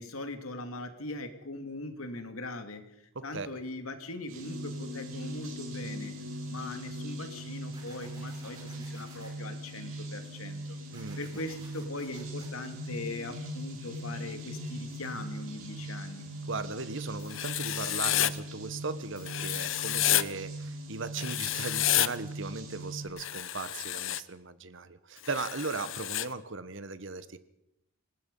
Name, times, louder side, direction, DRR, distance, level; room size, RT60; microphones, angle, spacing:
voice 1, 0.0-6.2 6.5-10.8 11.2-16.2, left 2 dB, 85° left, 7 dB, 2.6 m, -40 dB
voice 2, 3.1-3.5 10.9-11.2 16.5-27.4, right 4 dB, 60° right, 13 dB, 1.2 m, -38 dB
sound 1, 4.3-23.1, right 1 dB, 80° right, 7.9 m, -40 dB
sound 2, 7.7-9.3 10.9-12.5, right 2 dB, 20° right, 6.0 m, -54 dB
Writing, 17.3-18.3 19.3-20.2 21.2-22.1 23.2-24.2 25.2-26.3, left 13 dB, 65° left, 0.8 m, -30 dB
27.0 x 18.5 x 5.5 m, 0.84 s
head